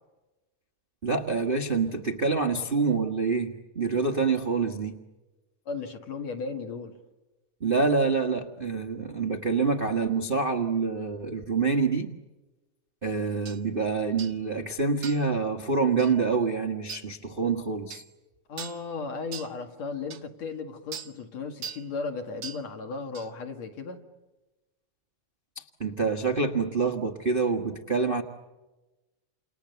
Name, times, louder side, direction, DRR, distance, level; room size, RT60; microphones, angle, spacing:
voice 1, 1.0-5.0 7.6-12.1 13.0-18.0 25.5-28.2, right 4 dB, 50° right, 0.6 m, -26 dB
voice 2, 5.7-7.0 18.5-24.0, left 4 dB, 60° left, 3.3 m, -35 dB
sound 1, 13.5-13.6 14.2-14.4 15.0-15.3 16.0-16.2 16.9-17.1 17.9-18.1 18.6-18.8 19.3-19.5 20.1-20.2 20.9-21.1 21.6-21.9 22.4-22.6 23.1-23.3, right 8 dB, 65° right, 1.1 m, -40 dB
29.5 x 29.0 x 7.0 m
omnidirectional pair, 3.6 m